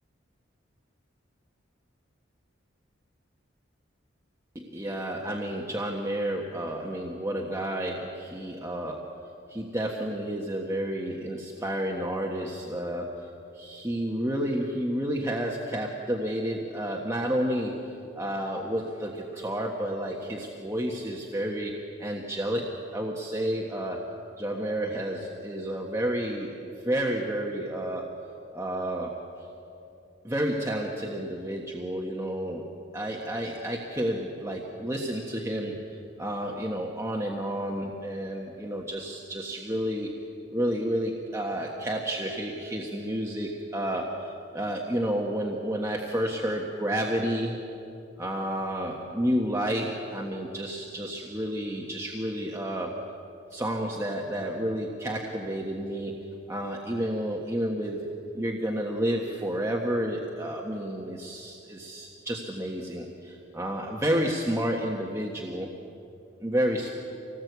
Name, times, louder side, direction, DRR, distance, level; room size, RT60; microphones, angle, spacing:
voice 1, 4.5-9.1 9.5-13.3 13.5-21.7 22.0-24.1 24.4-28.1 28.5-29.2 30.2-35.8 36.2-40.1 40.5-47.6 48.2-52.9 53.5-56.2 56.5-65.7 66.4-66.9, right 1 dB, 15° right, -1 dB, 1.4 m, -30 dB
25.5 x 18.5 x 8.2 m, 2.8 s
head